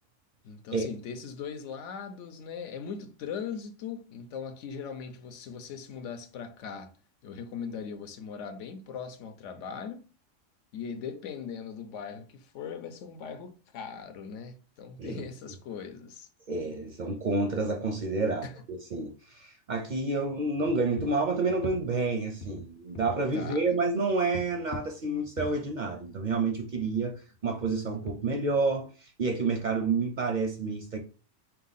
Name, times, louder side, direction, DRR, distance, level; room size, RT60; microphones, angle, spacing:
voice 1, 0.4-7.0 7.2-10.1 10.7-16.3 18.4-18.6 23.3-23.6, left 6 dB, 75° left, 0.9 m, -40 dB
voice 2, 16.5-31.0, right 3 dB, 55° right, 0.5 m, -29 dB
sound 1, 20.7-22.1 22.4-23.2 24.3-26.2 26.5-28.7, equal, 50° left, 0.7 m, -43 dB
3.6 x 2.8 x 4.0 m
omnidirectional pair, 1.3 m